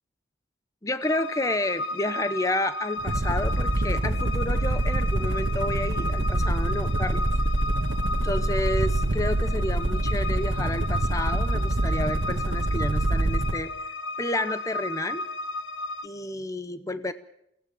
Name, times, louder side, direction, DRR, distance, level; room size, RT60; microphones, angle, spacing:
voice 1, 0.8-7.3 8.2-15.3 16.0-17.1, left 1 dB, 20° left, 13 dB, 0.8 m, -30 dB
sound 1, 1.0-16.1, left 2 dB, 80° left, 1.0 m, -34 dB
sound 2, 3.0-13.6, right 1 dB, 85° right, 1.3 m, -25 dB
24.0 x 18.0 x 6.9 m, 0.76 s
head